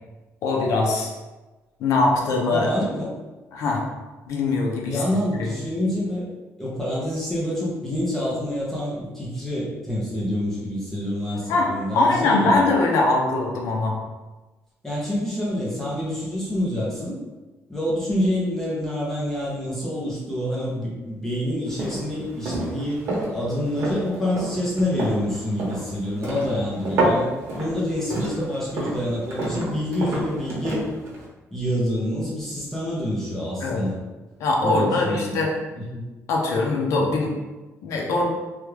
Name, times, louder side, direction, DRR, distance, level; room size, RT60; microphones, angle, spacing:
voice 1, 0.4-1.1 1.8-2.7 3.5-3.8 4.3-5.0 5.4-5.5 11.5-14.0 33.6-33.9 34.4-35.5 36.3-37.3 37.8-38.3, left 2 dB, 70° left, -1 dB, 0.6 m, -22 dB
voice 2, 2.5-3.1 4.8-6.3 6.6-12.6 14.8-17.2 17.7-23.0 23.3-30.9 31.5-34.0 34.6-35.4 35.7-36.0, left 1 dB, 5° left, -6 dB, 0.6 m, -27 dB
sound 1, 21.7-31.3, right 1 dB, 55° right, 0.9 m, -29 dB
3.1 x 2.3 x 3.2 m, 1.2 s
cardioid pair, 175°, 5 cm